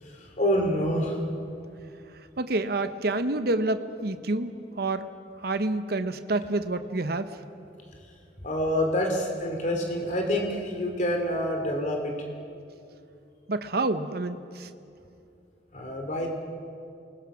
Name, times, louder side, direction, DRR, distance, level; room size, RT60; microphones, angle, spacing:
voice 1, 0.0-1.2 8.4-12.1 15.7-16.3, equal, 45° left, 2 dB, 3.0 m, -27 dB
voice 2, 2.4-5.1 5.4-7.4 13.5-14.7, right 2 dB, 60° right, 10 dB, 0.9 m, -28 dB
28.0 x 20.5 x 6.3 m, 2.6 s
head